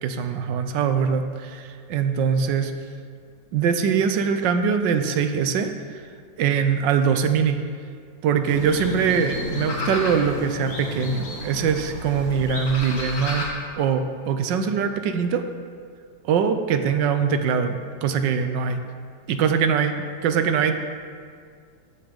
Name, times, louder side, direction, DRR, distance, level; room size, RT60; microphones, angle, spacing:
voice 1, 0.0-2.7 3.5-6.0 6.4-7.6 8.2-13.5 13.8-15.5 16.2-18.8 19.3-19.9 20.2-20.7, right 6 dB, 75° right, 8 dB, 1.3 m, -22 dB
sound 1, 8.4-13.5, left 2 dB, 45° left, 1.8 m, -32 dB
13.0 x 5.6 x 5.1 m, 2.1 s
omnidirectional pair, 2.1 m